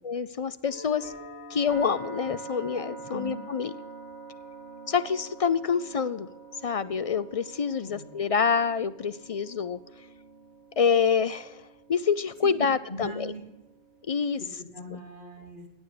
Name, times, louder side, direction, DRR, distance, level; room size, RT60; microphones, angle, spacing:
voice 1, 0.0-1.1 1.5-3.7 4.9-6.3 6.6-9.8 10.8-11.6 11.9-13.3 14.1-14.4, left 6 dB, 60° left, 15 dB, 0.3 m, -27 dB
sound 1, 0.6-14.5, right 3 dB, 75° left, 6.8 m, -45 dB
voice 2, 3.1-3.4 7.8-8.1 12.4-12.5 12.9-13.4 14.6-15.7, right 1 dB, 40° left, 0 dB, 3.1 m, -40 dB
16.0 x 9.4 x 6.6 m, 1.0 s
omnidirectional pair, 1.2 m